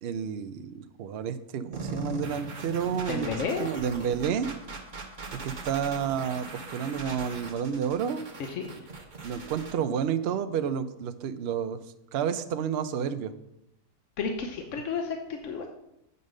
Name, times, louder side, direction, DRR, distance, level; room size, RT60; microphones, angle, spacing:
voice 1, 0.0-3.3 3.6-4.5 5.4-8.2 9.2-11.8 12.1-13.3, right 8 dB, 80° right, 9 dB, 0.5 m, -30 dB
sound 1, 1.7-9.7, right 2 dB, 30° right, 1.1 m, -40 dB
voice 2, 3.1-3.7 8.5-8.6 14.2-15.7, left 5 dB, 55° left, 4 dB, 1.0 m, -31 dB
7.9 x 5.4 x 6.4 m, 0.84 s
omnidirectional pair, 1.8 m